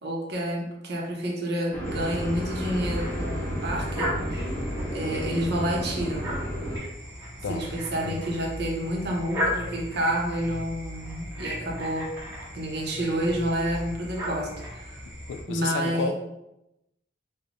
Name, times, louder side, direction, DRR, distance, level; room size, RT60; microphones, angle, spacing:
voice 1, 0.0-4.6 4.9-6.4 7.5-12.1 12.5-15.0 15.5-16.1, right 1 dB, 60° right, 0 dB, 0.8 m, -29 dB
sound 1, 1.7-6.8, equal, 10° left, 0.8 m, -32 dB
sound 2, 1.8-15.4, equal, 15° right, 1.1 m, -36 dB
voice 2, 8.0-8.3 15.0-16.1, left 4 dB, 80° left, 8 dB, 0.3 m, -32 dB
3.3 x 2.2 x 3.8 m, 0.89 s
head